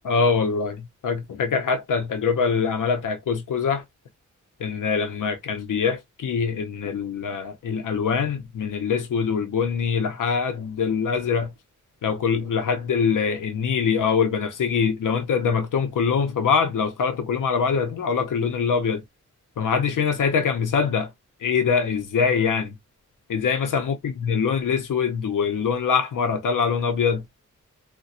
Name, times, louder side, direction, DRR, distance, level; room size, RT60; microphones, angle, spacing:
voice 1, 0.1-3.8 4.6-11.5 12.0-19.0 19.6-21.1 21.4-22.7 23.3-27.2, left 6 dB, 85° left, 0.5 m, -23 dB
4.1 x 2.1 x 2.3 m
wide cardioid pair, 120°, 31 cm